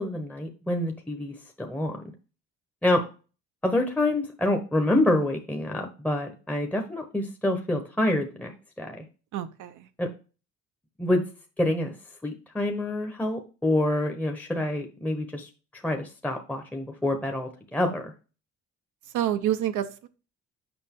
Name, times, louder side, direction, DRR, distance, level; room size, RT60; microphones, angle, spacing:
voice 1, 0.0-2.0 2.8-3.0 3.6-9.0 10.0-10.1 11.0-11.2 11.6-11.9 12.2-18.1, left 1 dB, 5° left, 3 dB, 1.0 m, -27 dB
voice 2, 9.3-9.9 19.1-20.1, right 11 dB, 80° right, 8 dB, 0.7 m, -28 dB
7.0 x 5.2 x 3.6 m, 0.34 s
cardioid pair, 90°, 30 cm